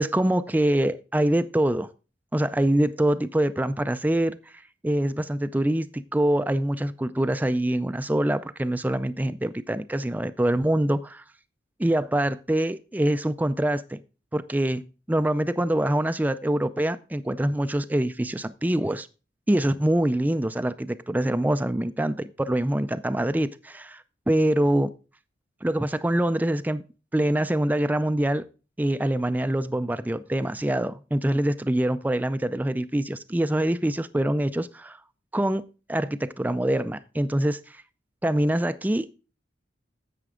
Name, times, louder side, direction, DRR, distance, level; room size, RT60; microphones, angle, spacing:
voice 1, 0.0-1.9 2.3-4.4 4.8-11.2 11.8-14.0 14.3-14.8 15.1-19.1 19.5-24.9 25.6-26.8 27.1-28.4 28.8-35.0 35.3-37.8 38.2-39.1, right 1 dB, 10° right, 0.4 m, -25 dB
11.0 x 7.8 x 3.6 m
head